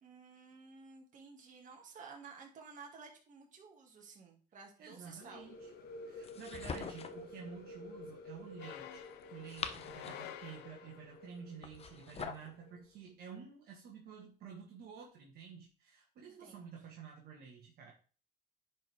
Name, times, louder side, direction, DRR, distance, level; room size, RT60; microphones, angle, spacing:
voice 1, 0.0-5.5 16.2-16.7, right 5 dB, 50° right, 1 dB, 2.3 m, -54 dB
voice 2, 4.8-5.7 6.0-17.9, right 7 dB, 65° right, -1 dB, 1.7 m, -51 dB
sound 1, 5.2-12.8, left 2 dB, 65° left, 1.4 m, -51 dB
sound 2, 6.2-7.3 9.2-10.4 11.6-12.5, left 6 dB, 35° left, 0.8 m, -44 dB
sound 3, 8.6-11.2, left 12 dB, 85° left, 0.8 m, -50 dB
10.0 x 4.7 x 3.6 m, 0.37 s
cardioid pair, 110°, 17 cm